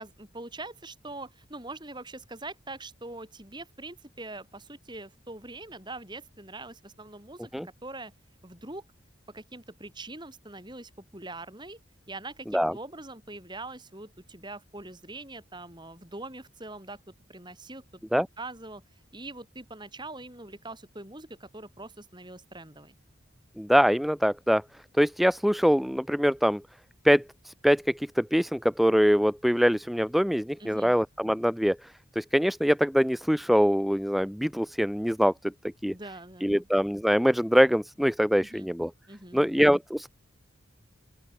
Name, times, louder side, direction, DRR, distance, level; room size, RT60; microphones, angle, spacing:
voice 1, 0.0-8.1 8.4-8.8 9.3-11.8 12.1-17.0 17.3-17.8 18.4-18.8 19.1-23.0 30.6-30.9 35.9-36.7 38.4-38.7 39.1-39.6, right 2 dB, 20° right, 5.6 m, -43 dB
voice 2, 23.6-24.6 25.0-26.6 27.0-35.5 35.8-35.9 36.4-38.9 39.3-40.1, equal, ahead, 0.4 m, -24 dB
open air
head